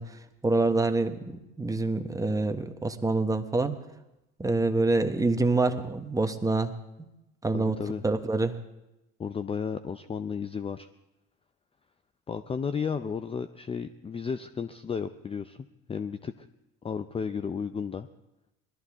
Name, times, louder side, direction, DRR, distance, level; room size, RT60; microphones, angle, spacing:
voice 1, 0.0-1.3 1.6-3.7 4.4-6.7 7.4-7.8 8.0-8.5, right 3 dB, 10° right, 7 dB, 1.2 m, -26 dB
voice 2, 7.5-8.0 9.2-10.9 12.3-15.6 15.9-16.5 16.8-18.1, left 6 dB, 20° left, 11 dB, 0.5 m, -33 dB
20.0 x 13.0 x 3.6 m, 0.93 s
hypercardioid pair, 80°, 31 cm